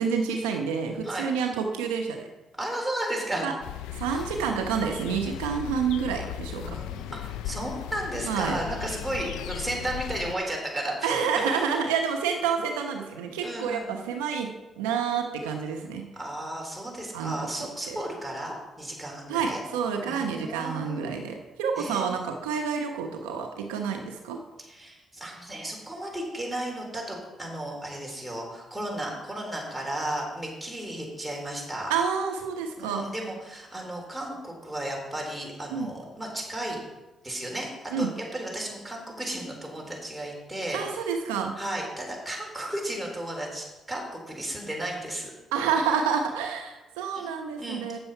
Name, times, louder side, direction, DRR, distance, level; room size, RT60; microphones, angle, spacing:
voice 1, 0.0-2.3 3.4-3.5 3.9-6.8 8.3-8.6 11.0-14.5 14.8-16.0 17.1-17.5 17.9-18.0 19.3-24.4 31.9-33.0 35.7-35.9 37.9-38.1 40.7-41.5 45.5-48.0, right 6 dB, 90° right, 4 dB, 0.8 m, -28 dB
voice 2, 2.6-3.5 4.1-4.2 6.6-11.2 13.4-14.0 16.2-19.6 20.1-21.1 21.8-22.1 24.6-31.9 32.8-36.8 37.2-40.8 41.6-45.3 47.1-47.3 47.6-48.0, right 1 dB, 5° right, -2 dB, 4.0 m, -34 dB
sound 1, 3.6-10.3, left 12 dB, 80° left, 0.4 m, -37 dB
8.8 x 7.0 x 5.6 m, 1.1 s
hypercardioid pair, 55°, 0 cm